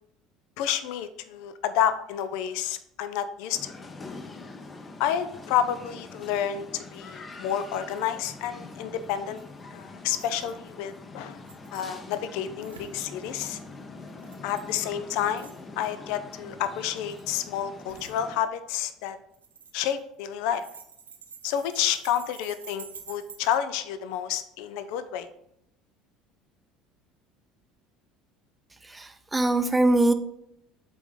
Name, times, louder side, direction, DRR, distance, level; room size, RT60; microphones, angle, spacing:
voice 1, 0.6-3.7 5.0-9.4 9.7-11.4 11.7-13.6 14.4-19.2 19.7-20.6 21.4-25.3, left 9 dB, 65° left, 12 dB, 0.4 m, -30 dB
sound 1, 3.5-18.4, left 3 dB, 30° left, 0.8 m, -44 dB
sound 2, 7.6-7.7 7.9-8.1 9.0-9.6 10.2-10.6 11.3-12.2 12.6-13.0 14.1-14.8 15.4-15.7 16.9-17.3 17.9-18.1 19.3-20.1 20.4-23.6, right 6 dB, 90° right, 0.6 m, -48 dB
voice 2, 28.8-30.1, right 2 dB, 15° right, 7 dB, 0.5 m, -22 dB
8.2 x 3.7 x 3.7 m, 0.76 s
hypercardioid pair, 70°, 0 cm